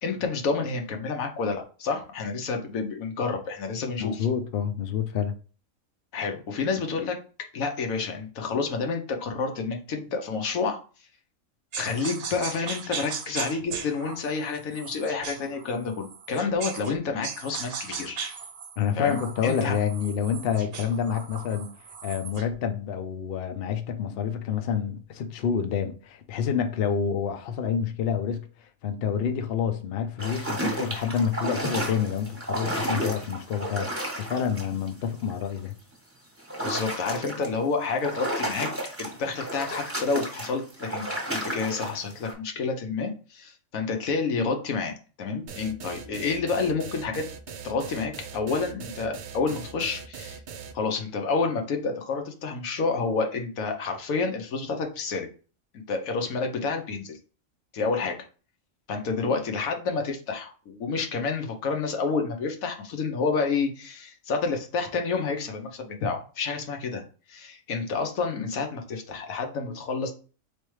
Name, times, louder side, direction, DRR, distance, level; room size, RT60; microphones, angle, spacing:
voice 1, 0.0-4.3 6.1-7.2 7.5-10.8 11.7-18.2 19.0-19.8 36.6-38.7 39.0-47.3 47.6-50.4 50.7-55.3 55.7-57.2 57.7-58.2 58.9-67.0 67.3-70.1, left 4 dB, 90° left, 1.3 m, -29 dB
voice 2, 4.0-5.3 18.8-21.7 22.0-33.9 34.2-35.7, left 7 dB, 60° left, 0.7 m, -28 dB
sound 1, 11.7-17.0 17.2-22.5, right 6 dB, 55° right, 0.8 m, -38 dB
sound 2, 30.2-34.9 35.3-35.7 36.4-37.5 38.0-42.3, right 1 dB, 10° right, 1.1 m, -32 dB
sound 3, 45.5-50.7, right 6 dB, 75° right, 0.4 m, -40 dB
4.3 x 3.3 x 3.1 m
omnidirectional pair, 1.4 m